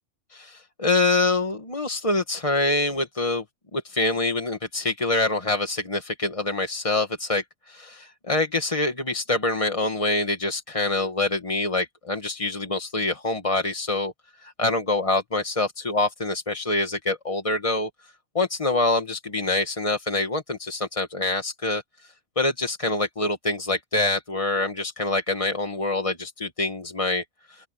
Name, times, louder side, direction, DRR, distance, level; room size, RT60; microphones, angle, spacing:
voice 1, 0.3-3.4 3.7-14.1 14.4-17.9 18.3-21.8 22.4-27.7, left 2 dB, 25° left, 1.4 m, -25 dB
open air
omnidirectional pair, 1.4 m